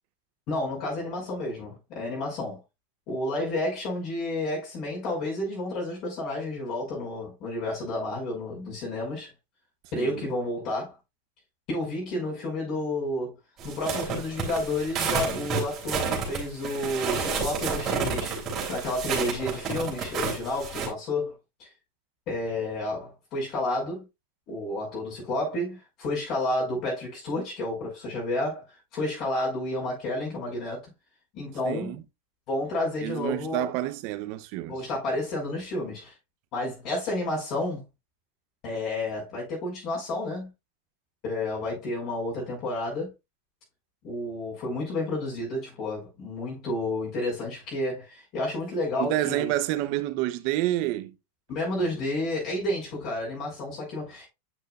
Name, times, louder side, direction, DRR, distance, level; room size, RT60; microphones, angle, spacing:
voice 1, 0.5-2.6 3.1-9.3 9.9-10.9 11.7-13.3 13.6-21.3 21.6-21.7 22.3-24.0 24.5-28.6 28.9-30.9 31.3-32.0 32.5-33.7 34.7-36.1 36.5-37.8 38.6-40.5 41.2-43.1 44.0-49.5 51.5-54.3, left 1 dB, 45° left, 5.4 m, -31 dB
voice 2, 9.9-10.3 31.6-32.0 33.0-34.7 49.0-51.1, right 15 dB, 50° right, 0.9 m, -28 dB
sound 1, 13.6-20.9, right 5 dB, 30° right, 3.3 m, -30 dB
8.9 x 6.3 x 2.5 m
supercardioid pair, 135°, 0 cm